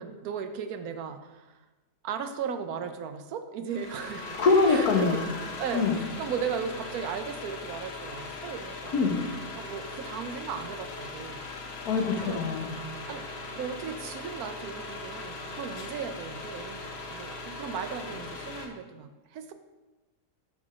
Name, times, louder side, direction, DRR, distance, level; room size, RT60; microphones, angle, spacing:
voice 1, 0.0-1.6 2.0-4.4 4.7-5.2 5.6-5.9 6.2-9.0 9.6-11.4 12.2-12.4 13.1-13.2 13.5-19.5, right 7 dB, 75° right, 9 dB, 1.1 m, -36 dB
sound 1, 3.7-18.7, left 3 dB, 50° left, 1.0 m, -39 dB
voice 2, 4.4-5.2 5.7-5.9 8.9-9.1 11.8-12.8, left 4 dB, 75° left, 3 dB, 1.5 m, -23 dB
11.0 x 3.9 x 4.9 m, 1.2 s
omnidirectional pair, 1.6 m